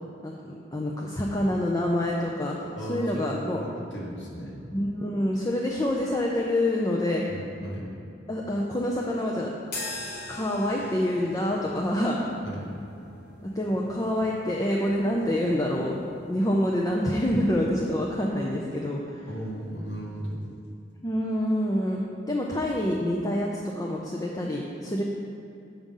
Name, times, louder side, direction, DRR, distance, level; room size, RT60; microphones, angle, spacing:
voice 1, 0.7-2.6 2.9-3.6 4.7-7.2 8.3-9.5 10.3-12.2 13.4-16.0 16.3-19.3 21.0-25.0, left 1 dB, 20° left, -2 dB, 0.5 m, -27 dB
voice 2, 2.7-4.6 7.3-7.9 12.4-12.7 19.3-20.4, right 1 dB, 75° left, -4 dB, 1.6 m, -35 dB
sound 1, 9.7-18.2, left 2 dB, 55° left, 1.2 m, -43 dB
7.4 x 5.1 x 5.4 m, 2.6 s
head